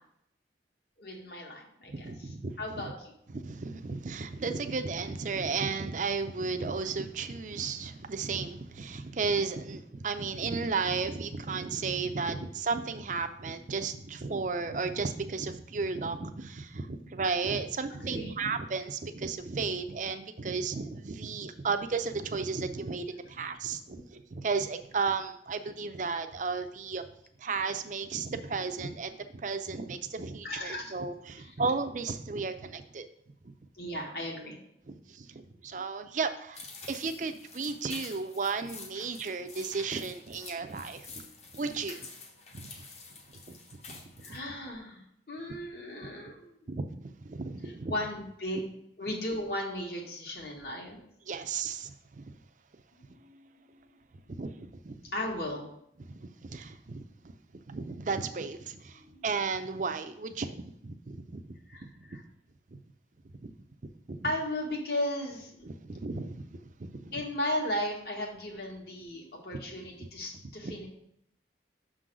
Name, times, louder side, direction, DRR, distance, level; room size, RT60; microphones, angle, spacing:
voice 1, 1.0-2.1 2.6-3.1 12.4-12.5 16.9-17.0 17.9-18.4 23.9-24.1 30.4-30.9 33.8-34.6 41.1-41.2 44.2-46.5 47.9-48.7 49.0-51.0 53.1-53.5 55.1-55.7 58.9-59.3 61.7-62.2 64.2-65.7 67.1-70.9, left 1 dB, 60° left, -1 dB, 1.7 m, -36 dB
voice 2, 1.9-2.9 3.3-27.1 27.4-33.0 33.4-33.5 34.9-41.1 41.5-42.1 42.5-42.8 43.3-43.5 43.9-44.4 46.7-47.9 51.3-52.4 54.3-55.0 56.0-57.4 57.7-61.4 61.8-62.2 62.7-62.8 63.4-63.5 64.1-64.3 65.6-67.1 70.0-70.1 70.6-70.7, right 4 dB, 45° right, 9 dB, 0.5 m, -34 dB
sound 1, 36.5-44.4, left 4 dB, 35° left, 1.0 m, -48 dB
6.4 x 3.8 x 6.1 m, 0.74 s
head